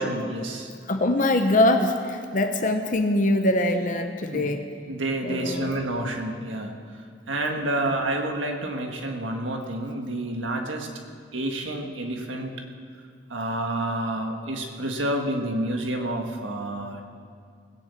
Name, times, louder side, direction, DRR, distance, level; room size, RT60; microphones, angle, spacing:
voice 1, 0.0-0.7 4.3-4.5 4.9-6.7 7.3-10.9 11.3-12.5 13.3-17.0, right 1 dB, 85° right, 3 dB, 1.7 m, -29 dB
voice 2, 0.9-4.7 5.2-5.8, left 1 dB, 45° left, 6 dB, 0.8 m, -23 dB
19.5 x 7.0 x 8.4 m, 2.2 s
head